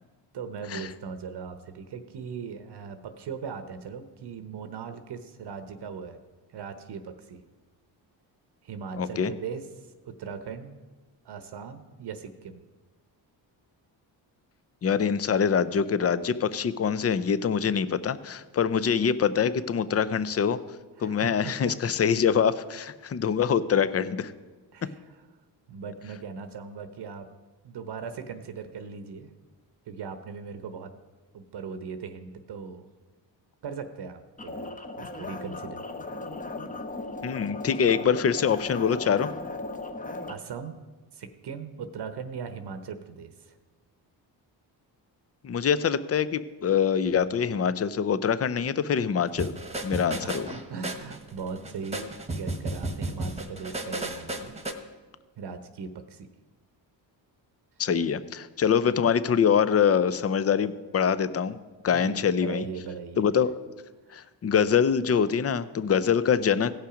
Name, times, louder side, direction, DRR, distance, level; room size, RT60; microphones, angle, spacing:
voice 1, 0.3-6.2 6.5-7.4 8.6-10.8 11.2-12.6 21.0-21.7 24.7-25.0 25.7-27.3 27.6-29.3 29.9-30.9 31.3-32.9 33.6-35.8 40.3-40.8 41.1-43.6 49.9-54.5 55.4-56.3 61.9-63.3 64.1-64.3, right 6 dB, 60° right, 9 dB, 0.9 m, -39 dB
voice 2, 9.0-9.3 14.8-20.6 21.0-24.3 37.2-39.3 45.4-49.5 49.8-50.5 57.8-61.6 61.8-62.7 63.2-63.5 64.1-66.7, left 7 dB, 35° left, 15 dB, 0.5 m, -24 dB
sound 1, 34.4-40.3, left 2 dB, 20° left, 0.9 m, -37 dB
sound 2, 49.4-54.7, right 1 dB, 15° right, 1.2 m, -34 dB
16.5 x 5.6 x 5.0 m, 1.3 s
cardioid pair, 80°, 46 cm